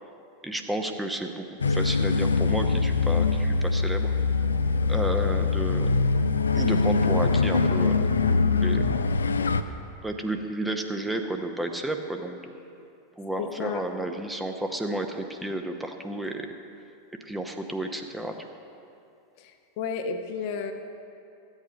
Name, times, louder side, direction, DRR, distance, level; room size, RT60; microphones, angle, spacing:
voice 1, 0.4-4.1 4.9-5.9 6.5-8.9 10.0-12.5 13.2-16.5 17.2-18.5, right 1 dB, 5° right, 4 dB, 0.8 m, -32 dB
sound 1, 1.6-9.6, left 4 dB, 80° left, 0.4 m, -23 dB
voice 2, 13.4-13.8 19.4-20.7, left 6 dB, 50° left, 5 dB, 0.9 m, -32 dB
14.0 x 8.3 x 5.1 m, 2.6 s
figure-of-eight pair, 90°, 0 cm